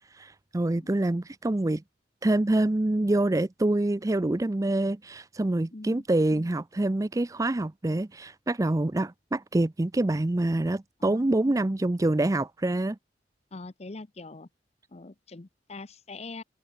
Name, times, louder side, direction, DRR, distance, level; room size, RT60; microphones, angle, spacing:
voice 1, 0.1-1.8 2.2-13.0, right 2 dB, 20° right, 0.4 m, -26 dB
voice 2, 0.7-1.1 5.7-6.0 11.0-11.6 13.5-14.5 14.9-16.4, left 3 dB, 35° left, 0.8 m, -43 dB
open air
head